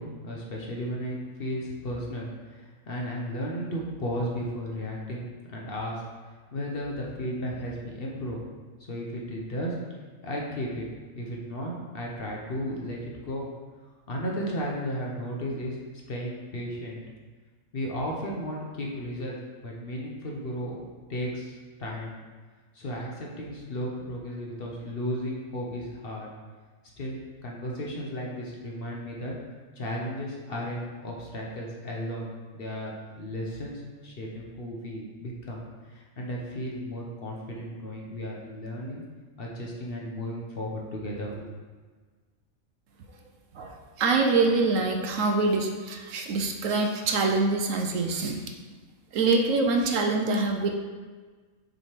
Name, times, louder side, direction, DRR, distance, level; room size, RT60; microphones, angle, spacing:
voice 1, 0.0-6.0 6.5-8.4 8.9-9.7 10.2-10.9 11.1-13.5 14.1-15.8 16.1-17.0 17.7-19.4 19.6-20.8 21.1-22.2 22.7-26.3 27.0-27.2 27.4-29.3 29.8-35.6 35.9-39.0 39.4-41.5, equal, 50° left, -2 dB, 0.9 m, -34 dB
voice 2, 43.5-48.4 49.1-50.7, right 3 dB, 70° right, 3 dB, 1.0 m, -25 dB
6.4 x 3.4 x 4.4 m, 1.4 s
omnidirectional pair, 1.5 m